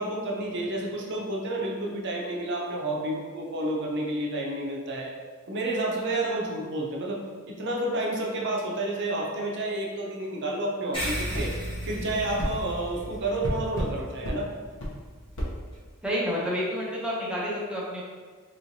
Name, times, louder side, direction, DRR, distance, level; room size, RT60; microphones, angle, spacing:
voice 1, 0.0-5.1 5.5-11.6 11.9-14.5, right 1 dB, 50° right, -1 dB, 0.6 m, -30 dB
sound 1, 10.9-15.8, equal, 25° left, 1.0 m, -36 dB
sound 2, 11.3-11.5 12.4-12.5 13.4-13.9 14.2-14.4 14.8-14.9 15.4-15.5, equal, 55° left, 0.7 m, -30 dB
voice 2, 16.0-18.0, equal, 5° right, -5 dB, 0.6 m, -29 dB
3.7 x 3.1 x 2.6 m, 1.5 s
head